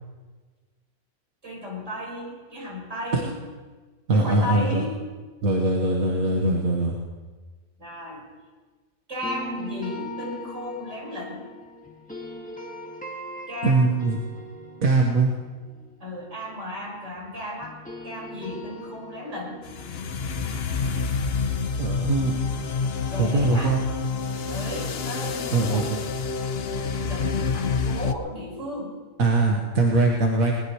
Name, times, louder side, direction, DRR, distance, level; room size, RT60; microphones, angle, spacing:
voice 1, 1.4-3.4 4.1-5.0 6.3-6.7 7.8-8.3 9.1-11.5 13.5-13.9 14.8-14.9 16.0-17.8 18.0-19.6 23.1-23.8 24.4-25.9 26.6-26.8 27.1-29.0, left 1 dB, 60° right, -4 dB, 5.5 m, -34 dB
voice 2, 4.1-4.9 5.4-6.9 13.6-14.2 14.8-15.3 21.8-22.3 23.2-23.8 25.5-26.0 29.2-30.5, right 3 dB, 80° right, 0 dB, 1.9 m, -21 dB
sound 1, 9.2-17.3 17.6-22.6, equal, 5° left, 2.0 m, -41 dB
sound 2, 19.6-28.1, left 5 dB, 55° left, 0.9 m, -28 dB
21.0 x 20.0 x 3.2 m, 1.4 s
omnidirectional pair, 1.4 m